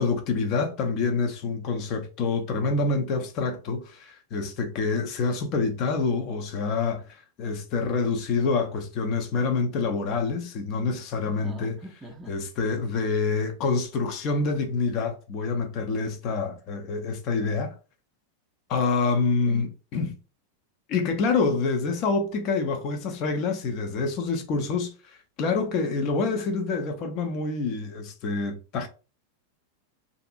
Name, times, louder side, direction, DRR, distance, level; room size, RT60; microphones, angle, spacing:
voice 1, 0.0-11.8 12.3-17.7 18.7-20.1 20.9-24.9 25.4-28.9, left 4 dB, 40° left, 0.6 m, -27 dB
voice 2, 11.2-12.4 19.4-19.7, right 2 dB, 5° right, 0.5 m, -43 dB
2.6 x 2.5 x 2.4 m
figure-of-eight pair, 90°, 0 cm